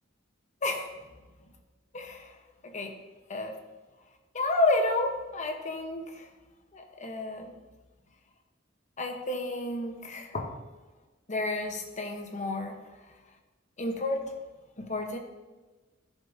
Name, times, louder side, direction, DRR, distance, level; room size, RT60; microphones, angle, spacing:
voice 1, 0.6-0.9 1.9-2.3 2.6-2.9 3.3-3.6 4.3-6.3 6.7-7.5 9.0-10.6 11.3-12.8 13.8-14.3 14.8-15.2, left 2 dB, 40° left, 4 dB, 1.0 m, -31 dB
13.5 x 7.4 x 2.7 m, 1.2 s
head